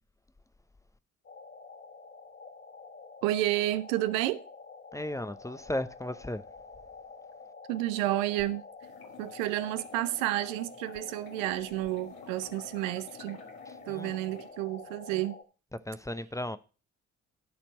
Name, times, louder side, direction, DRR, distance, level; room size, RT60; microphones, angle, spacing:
sound 1, 1.2-15.4, left 4 dB, 35° left, 2.1 m, -48 dB
voice 1, 3.2-4.4 7.7-8.6 9.2-13.4 13.9-15.4, right 15 dB, 75° right, 0.6 m, -30 dB
voice 2, 4.9-6.4 13.9-14.1 15.9-16.6, left 1 dB, 10° left, 0.7 m, -35 dB
sound 2, 8.8-14.5, left 6 dB, 65° left, 1.9 m, -52 dB
12.0 x 4.4 x 6.2 m
hypercardioid pair, 40°, 39 cm